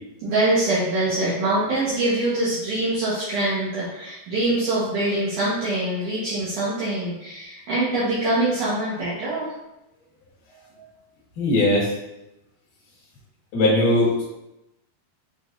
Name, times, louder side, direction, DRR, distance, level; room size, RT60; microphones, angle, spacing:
voice 1, 0.2-9.5, right 2 dB, 60° right, -9 dB, 2.4 m, -24 dB
voice 2, 11.4-11.9 13.5-14.2, left 1 dB, 60° left, -6 dB, 2.9 m, -19 dB
9.2 x 4.4 x 2.7 m, 0.92 s
omnidirectional pair, 4.8 m